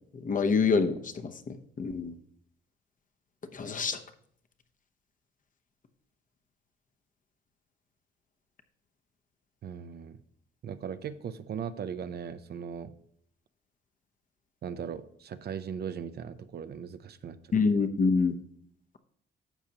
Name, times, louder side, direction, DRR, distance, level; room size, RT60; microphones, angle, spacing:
voice 1, 0.1-2.1 3.5-4.0 17.5-18.4, left 4 dB, 40° left, 8 dB, 0.9 m, -27 dB
voice 2, 9.6-10.2 10.6-12.9 14.6-17.4, right 7 dB, 55° right, 12 dB, 0.6 m, -38 dB
11.5 x 7.1 x 2.9 m, 0.66 s
cardioid pair, 90°, 20 cm